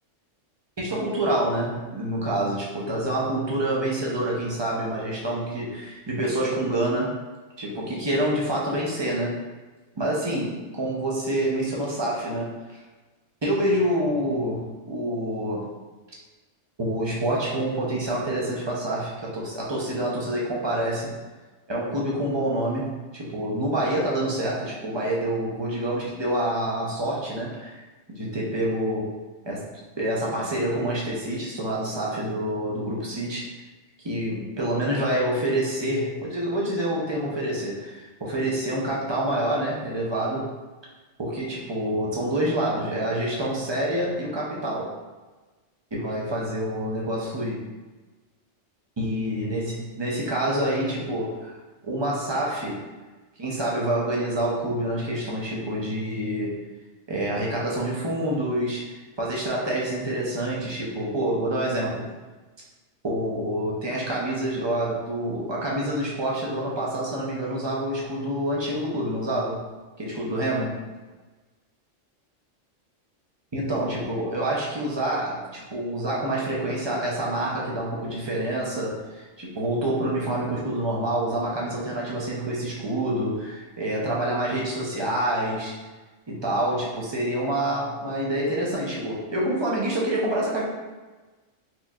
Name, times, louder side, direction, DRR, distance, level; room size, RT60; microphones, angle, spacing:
voice 1, 0.8-7.1 7.6-9.3 10.0-12.5 13.4-15.7 16.8-21.1 21.7-29.1 29.4-29.6 30.0-33.5 34.0-40.5 41.2-44.9 45.9-47.6 49.0-51.5 51.8-52.8 53.4-56.5 57.1-62.0 63.0-69.6 70.0-70.8 73.5-85.8 86.3-90.6, right 1 dB, 30° right, -4 dB, 0.5 m, -27 dB
4.3 x 2.6 x 2.3 m, 1.2 s
omnidirectional pair, 1.3 m